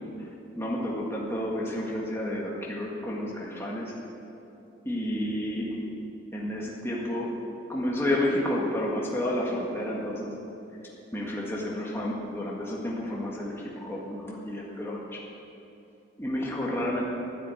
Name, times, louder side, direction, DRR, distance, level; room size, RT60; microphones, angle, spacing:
voice 1, 0.6-3.9 4.8-5.8 6.3-7.3 7.7-10.4 11.1-15.2 16.2-17.0, left 1 dB, 10° left, -3 dB, 1.7 m, -30 dB
11.0 x 10.0 x 8.4 m, 2.8 s
head